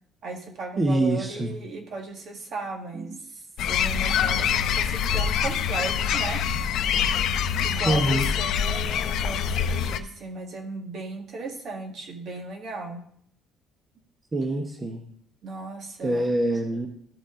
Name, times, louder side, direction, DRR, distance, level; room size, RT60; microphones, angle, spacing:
voice 1, 0.2-6.4 7.6-13.0 15.4-16.3, right 3 dB, 55° right, 3 dB, 1.8 m, -36 dB
voice 2, 0.8-1.5 2.9-3.2 7.9-8.3 14.3-15.0 16.0-16.9, right 1 dB, 25° right, 2 dB, 1.0 m, -25 dB
sound 1, 3.6-10.0, left 8 dB, 70° left, 0.6 m, -25 dB
13.5 x 5.2 x 3.8 m, 0.66 s
cardioid pair, 105°, 0 cm